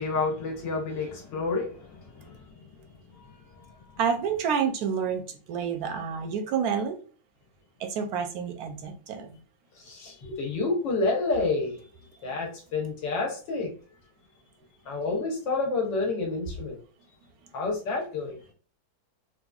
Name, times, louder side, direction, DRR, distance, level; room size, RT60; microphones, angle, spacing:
voice 1, 0.0-2.8 3.1-4.0 9.8-11.8 12.2-13.7 14.8-16.8 17.5-18.4, left 3 dB, 80° left, 1.7 m, -30 dB
voice 2, 4.0-7.0 7.8-9.4, right 7 dB, 70° right, 0.9 m, -29 dB
4.1 x 2.5 x 2.3 m
omnidirectional pair, 1.9 m